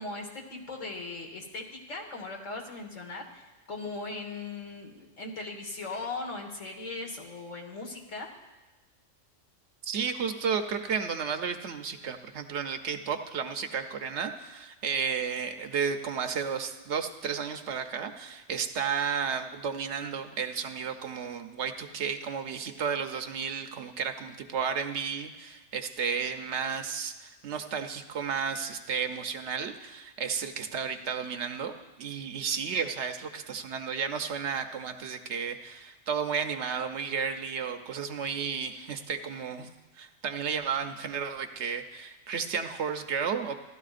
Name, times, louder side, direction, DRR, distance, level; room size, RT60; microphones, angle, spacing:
voice 1, 0.0-8.3, left 3 dB, 75° left, 0 dB, 2.0 m, -39 dB
voice 2, 9.8-43.6, right 6 dB, 65° right, 6 dB, 0.9 m, -33 dB
16.5 x 12.0 x 2.5 m, 1.1 s
omnidirectional pair, 1.3 m